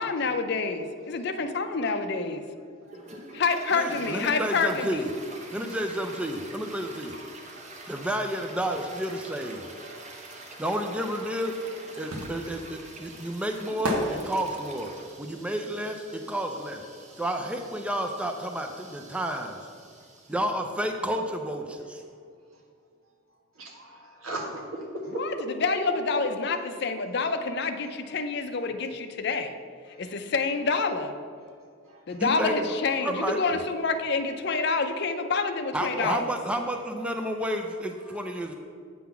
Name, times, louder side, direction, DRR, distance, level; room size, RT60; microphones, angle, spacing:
voice 1, 0.0-2.4 3.3-5.1 25.2-29.5 30.0-31.1 32.1-36.3, left 4 dB, 50° left, 8 dB, 0.5 m, -27 dB
Toilet flush, 2.9-20.8, right 2 dB, 35° right, 0.8 m, -46 dB
voice 2, 3.7-5.1 5.5-7.1 7.9-9.6 10.6-11.6 12.0-14.9 15.2-16.8 17.2-19.6 20.3-22.0 32.2-32.5 33.0-33.4 35.7-38.5, equal, 5° right, 4 dB, 0.4 m, -31 dB
sound 1, 11.4-17.1 17.4-19.0 19.2-19.3, equal, 70° right, 1.1 m, -35 dB
voice 3, 23.5-26.2 29.9-30.0 37.3-37.4 38.0-38.5, right 1 dB, 85° right, 0 dB, 1.5 m, -38 dB
8.4 x 3.8 x 7.0 m, 2.2 s
head